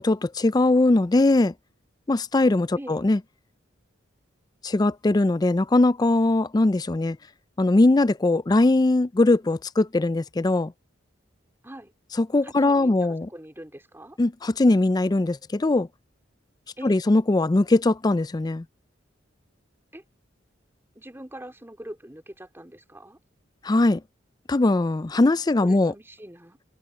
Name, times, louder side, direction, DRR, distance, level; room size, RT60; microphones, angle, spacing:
voice 1, 0.0-1.5 2.1-3.2 4.6-7.2 7.6-10.7 12.2-13.3 14.2-15.9 16.8-18.6 23.6-24.0 24.5-25.9, left 2 dB, 20° left, 0.4 m, -20 dB
voice 2, 2.7-3.1 11.6-11.9 12.4-14.2 16.8-17.0 19.9-20.0 20.9-23.2 25.6-26.6, right 1 dB, 10° right, 3.3 m, -42 dB
head